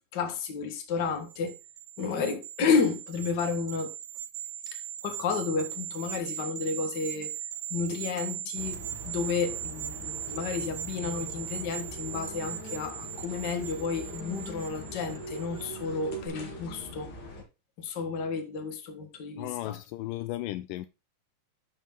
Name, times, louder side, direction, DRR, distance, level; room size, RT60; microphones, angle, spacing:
voice 1, 0.1-1.6 2.0-3.9 4.7-7.3 7.7-17.1 17.8-19.7, left 5 dB, 40° left, 1.7 m, -31 dB
sound 1, 1.2-15.8 16.1-16.3, right 10 dB, 90° right, 2.7 m, -39 dB
sound 2, 8.6-17.4, equal, 65° left, 3.8 m, -42 dB
voice 2, 19.4-20.9, left 16 dB, 80° left, 2.1 m, -35 dB
11.5 x 5.1 x 3.8 m
omnidirectional pair, 4.0 m